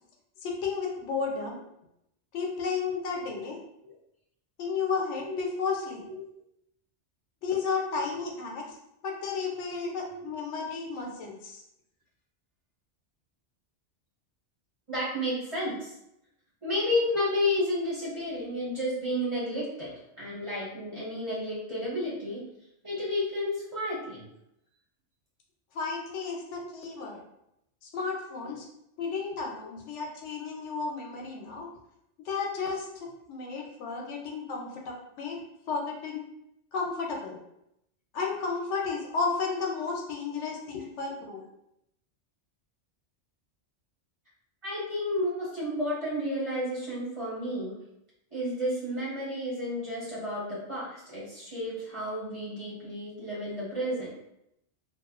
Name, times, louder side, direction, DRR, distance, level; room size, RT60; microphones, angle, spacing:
voice 1, 0.4-1.6 2.3-3.6 4.6-6.0 7.4-8.8 9.0-11.6 25.7-27.2 27.8-28.7 29.0-31.7 32.2-35.4 35.7-36.2 36.7-37.4 38.1-41.4, left 5 dB, 85° left, 0 dB, 0.9 m, -33 dB
voice 2, 9.9-10.3 14.9-15.9 16.6-22.4 22.8-24.2 26.6-26.7 44.6-47.8 48.3-54.1, left 1 dB, 30° right, -9 dB, 1.0 m, -31 dB
2.5 x 2.3 x 2.3 m, 0.81 s
omnidirectional pair, 1.2 m